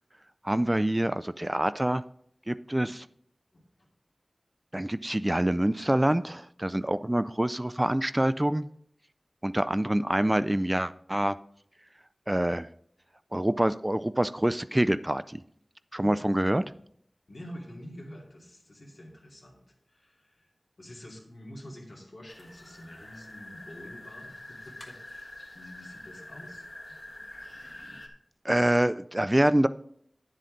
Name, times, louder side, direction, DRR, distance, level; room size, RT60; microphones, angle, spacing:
voice 1, 0.4-2.0 2.5-3.0 4.7-8.7 9.4-11.3 12.3-12.7 13.3-15.4 15.9-16.6 28.4-29.7, right 1 dB, 20° right, 14 dB, 0.3 m, -26 dB
voice 2, 3.5-3.9 15.9-16.7 17.3-19.6 19.9-20.5 20.8-26.7, equal, 80° left, -2 dB, 2.4 m, -47 dB
sound 1, 22.3-28.1, left 1 dB, 50° left, 1.4 m, -46 dB
9.5 x 7.5 x 3.9 m, 0.68 s
wide cardioid pair, 50°, 0 cm